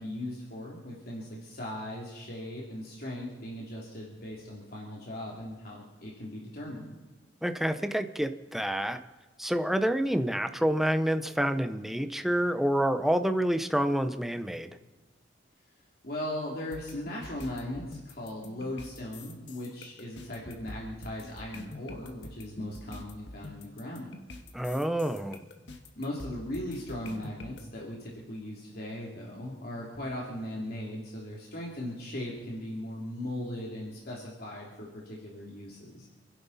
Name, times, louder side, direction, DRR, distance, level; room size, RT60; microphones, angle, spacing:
voice 1, 0.0-6.9 16.0-24.1 26.0-36.1, left 1 dB, 55° left, -3 dB, 2.9 m, -38 dB
voice 2, 7.4-9.0 9.4-14.7 24.5-25.4, equal, ahead, 8 dB, 0.8 m, -28 dB
sound 1, 16.7-27.6, left 1 dB, 75° left, 1.7 m, -46 dB
28.0 x 11.0 x 4.1 m, 1.2 s
head